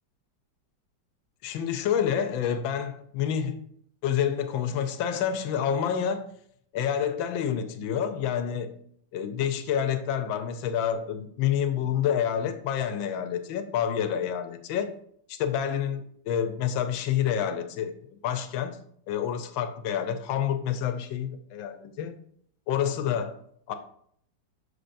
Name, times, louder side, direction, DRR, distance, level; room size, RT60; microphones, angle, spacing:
voice 1, 1.4-3.6 4.0-6.3 6.7-8.7 9.1-14.9 15.3-18.8 19.1-22.2 22.7-23.4 23.7-23.8, left 9 dB, 85° left, 9 dB, 1.4 m, -28 dB
6.5 x 6.1 x 2.6 m, 0.66 s
omnidirectional pair, 2.1 m